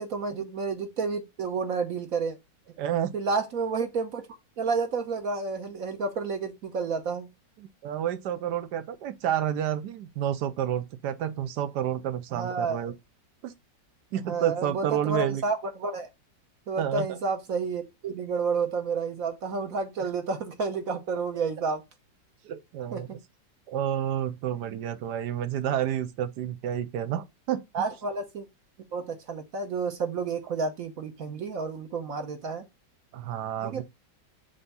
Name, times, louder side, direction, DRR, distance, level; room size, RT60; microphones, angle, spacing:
voice 1, 0.0-2.4 3.1-4.3 4.6-7.3 12.3-12.8 14.2-16.1 16.7-21.8 22.9-23.2 27.7-28.5 28.9-32.6 33.6-33.8, right 4 dB, 55° right, 1.2 m, -30 dB
voice 2, 2.8-3.1 7.6-12.9 13.4-13.5 14.1-15.4 16.8-17.2 20.0-20.1 22.4-23.1 23.7-27.6 33.1-33.8, right 10 dB, 75° right, 1.2 m, -30 dB
6.9 x 2.7 x 5.4 m
omnidirectional pair, 2.0 m